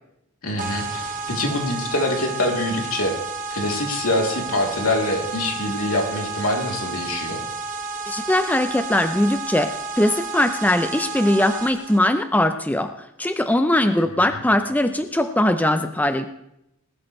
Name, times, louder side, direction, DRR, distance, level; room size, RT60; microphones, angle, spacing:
voice 1, 0.4-3.1 3.5-7.4 14.3-14.4, left 1 dB, 80° left, 1 dB, 3.2 m, -24 dB
sound 1, 0.6-12.0, right 4 dB, 35° right, 1.8 m, -31 dB
voice 2, 8.1-16.3, left 1 dB, 5° left, 9 dB, 0.5 m, -21 dB
20.0 x 13.0 x 3.2 m, 0.82 s
head